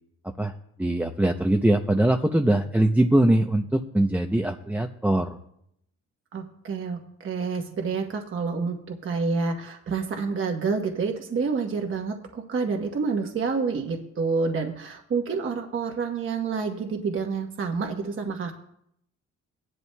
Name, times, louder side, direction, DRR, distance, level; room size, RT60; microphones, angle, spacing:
voice 1, 0.8-5.4, right 1 dB, 5° right, 4 dB, 0.6 m, -22 dB
voice 2, 6.3-18.5, right 4 dB, 40° right, 2 dB, 1.1 m, -28 dB
17.0 x 11.0 x 2.2 m, 0.76 s
cardioid pair, 90°, 30 cm